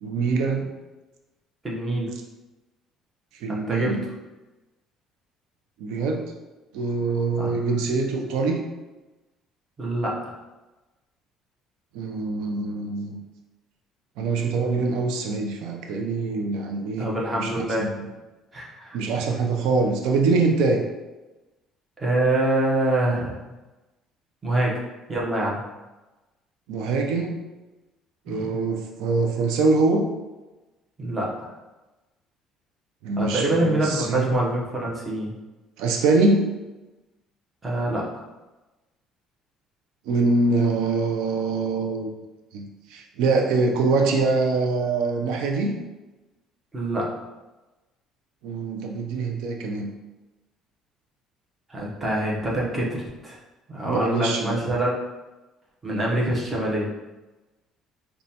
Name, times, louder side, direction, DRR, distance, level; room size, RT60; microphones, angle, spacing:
voice 1, 0.0-0.7 3.4-4.0 5.8-6.2 6.7-8.6 11.9-13.2 14.2-17.1 17.4-18.1 18.9-20.8 26.7-27.4 28.3-30.1 33.0-34.4 35.8-36.5 40.1-42.1 42.5-45.7 48.4-49.9 53.8-54.6, right 3 dB, 85° right, 2 dB, 0.4 m, -24 dB
voice 2, 1.6-2.1 3.5-4.0 7.4-7.6 9.8-10.2 17.0-17.9 18.5-19.0 22.0-23.4 24.4-24.8 25.1-25.6 28.3-28.6 31.0-31.5 33.2-35.3 37.6-38.1 46.7-47.1 51.7-53.4 53.7-54.9 55.8-56.9, right 1 dB, 20° right, -4 dB, 0.8 m, -25 dB
5.0 x 2.3 x 2.8 m, 1.1 s
cardioid pair, 140°, 0 cm